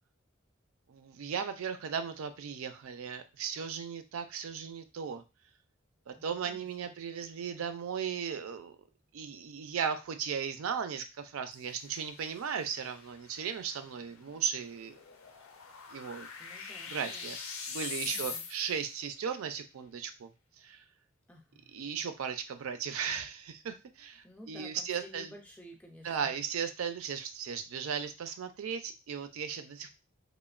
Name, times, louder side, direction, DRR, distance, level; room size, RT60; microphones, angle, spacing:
voice 1, 0.9-5.2 6.1-8.7 9.1-14.9 15.9-16.3 16.6-17.4 17.7-20.3 20.6-20.8 21.7-25.3 26.0-29.9, right 7 dB, 85° right, 9 dB, 0.4 m, -36 dB
voice 2, 6.2-6.7 16.4-17.3 18.1-18.4 21.3-21.7 24.2-26.3, left 1 dB, 5° left, 1 dB, 0.3 m, -52 dB
sound 1, 11.5-18.9, left 6 dB, 85° left, 0.4 m, -44 dB
2.9 x 2.1 x 2.3 m, 0.27 s
head